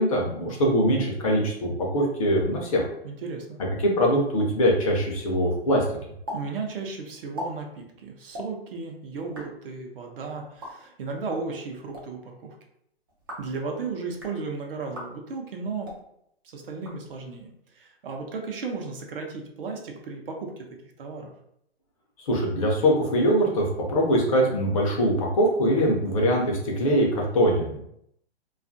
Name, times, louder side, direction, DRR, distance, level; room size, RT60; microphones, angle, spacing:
voice 1, 0.0-2.9 3.8-5.8 22.2-27.8, equal, 35° left, -1 dB, 0.5 m, -22 dB
voice 2, 3.0-3.6 6.3-12.6 13.4-15.9 16.4-20.7 21.0-21.3, right 4 dB, 60° right, 2 dB, 0.7 m, -35 dB
sound 1, 6.3-6.4 6.7-6.8 7.2-7.5 8.3-8.5 9.2-9.5 10.4-10.7 11.7-12.0 13.1-13.5 14.0-14.4 14.9-15.1 15.8-16.0 16.7-17.4, left 1 dB, 25° right, 0.3 m, -39 dB
2.5 x 2.4 x 2.5 m, 0.74 s
hypercardioid pair, 150°, 33 cm